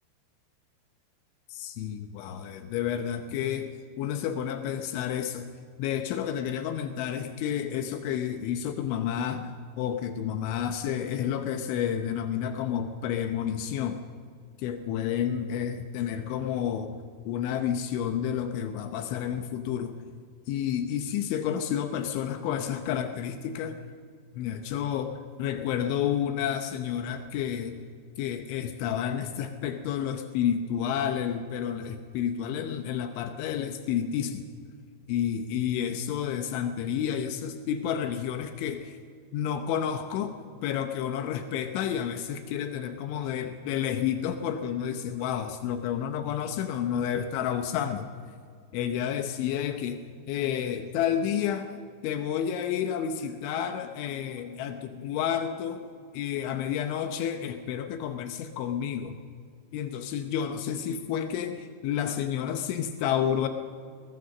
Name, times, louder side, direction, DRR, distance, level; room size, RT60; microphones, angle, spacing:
voice 1, 1.5-3.7 4.0-5.5 5.8-14.0 14.6-17.0 17.3-20.1 20.5-23.8 24.3-27.9 28.2-34.5 35.1-39.0 39.3-40.3 40.6-48.1 48.7-50.0 50.3-55.8 56.1-59.2 59.7-63.5, left 9 dB, 80° left, 7 dB, 3.3 m, -30 dB
21.0 x 19.5 x 6.5 m, 2.2 s
omnidirectional pair, 5.5 m